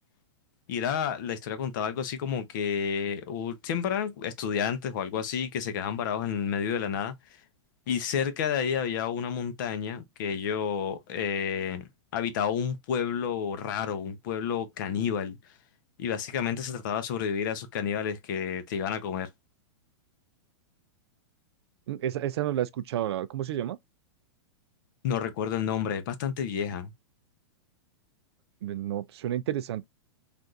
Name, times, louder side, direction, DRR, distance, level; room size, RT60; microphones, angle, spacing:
voice 1, 0.7-7.1 7.9-15.4 16.0-19.3 25.0-26.9, left 7 dB, 45° left, 0.6 m, -30 dB
voice 2, 21.9-23.8 28.6-29.8, right 11 dB, 60° right, 0.4 m, -30 dB
3.4 x 2.4 x 2.6 m
supercardioid pair, 165°, 15 cm